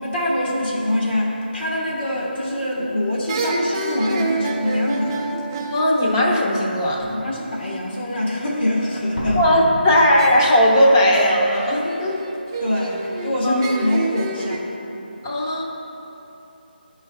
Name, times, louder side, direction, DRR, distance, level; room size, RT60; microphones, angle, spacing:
voice 1, 0.0-5.2 7.1-9.4 12.6-14.7, left 1 dB, 75° left, -4 dB, 1.5 m, -24 dB
sound 1, 2.5-2.9 3.3-6.9 10.2-14.6, right 3 dB, 25° right, 0.5 m, -29 dB
voice 2, 5.7-7.2 9.3-12.2 13.4-13.6 15.2-15.6, equal, 20° left, -2 dB, 0.8 m, -17 dB
Slam, 6.0-6.1 6.7-7.1 9.2-11.0 11.3-11.4, left 1 dB, 60° left, 1.2 m, -32 dB
10.5 x 4.7 x 3.2 m, 3.0 s
figure-of-eight pair, 165°, 6 cm